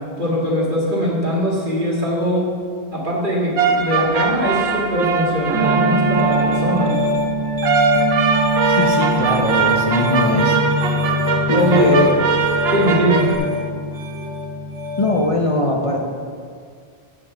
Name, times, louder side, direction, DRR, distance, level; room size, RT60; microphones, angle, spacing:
voice 1, 0.2-2.5 2.9-7.0 11.5-11.9 12.7-13.3, equal, 50° right, -5 dB, 2.3 m, -20 dB
sound 1, 3.6-6.9 7.6-13.4, right 5 dB, 80° right, 0.9 m, -21 dB
Piano, 5.5-15.2, equal, 30° right, 1.4 m, -22 dB
voice 2, 8.8-10.6 11.5-12.1 15.0-16.0, left 2 dB, 35° left, 0 dB, 0.7 m, -20 dB
7.9 x 6.1 x 6.7 m, 2.1 s
omnidirectional pair, 1.1 m